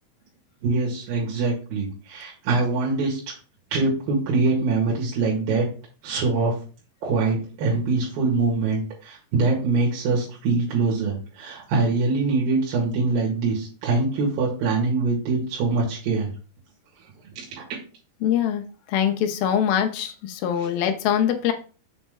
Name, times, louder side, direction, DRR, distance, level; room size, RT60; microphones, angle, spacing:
voice 1, 0.6-3.2 3.7-5.7 6.0-6.5 7.0-16.3 17.4-17.6, right 3 dB, 75° right, -4 dB, 3.4 m, -23 dB
voice 2, 18.2-18.6 18.9-21.5, left 9 dB, 75° left, 6 dB, 2.6 m, -23 dB
7.1 x 4.3 x 3.6 m, 0.36 s
omnidirectional pair, 4.4 m